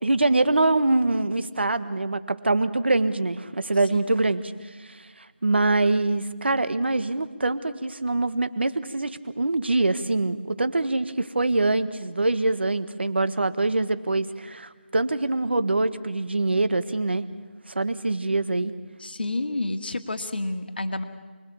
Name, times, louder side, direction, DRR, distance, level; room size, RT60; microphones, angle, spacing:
voice 1, 0.0-4.4 5.4-17.2 17.7-18.7, right 2 dB, 65° right, 11 dB, 1.6 m, -24 dB
voice 2, 19.0-21.0, left 2 dB, 60° left, 6 dB, 1.9 m, -29 dB
29.0 x 21.0 x 7.3 m, 1.4 s
figure-of-eight pair, 175°, 6 cm